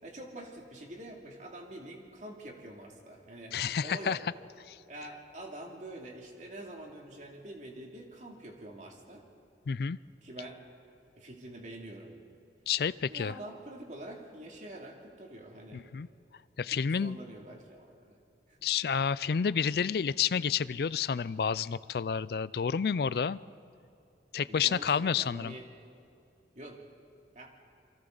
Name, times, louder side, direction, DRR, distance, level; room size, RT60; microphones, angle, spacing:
voice 1, 0.0-4.2 4.9-9.3 10.2-10.6 11.2-12.1 13.1-15.8 16.6-16.7 17.0-18.2 18.5-18.6 24.5-25.7 26.5-26.8 27.3-27.5, right 1 dB, 45° right, 0 dB, 2.6 m, -46 dB
voice 2, 3.5-4.2 4.7-4.8 9.7-10.0 12.7-13.3 15.7-16.1 16.6-17.2 18.6-23.4 24.3-25.5, left 7 dB, 60° left, 18 dB, 0.4 m, -30 dB
28.0 x 24.0 x 4.0 m, 2.6 s
head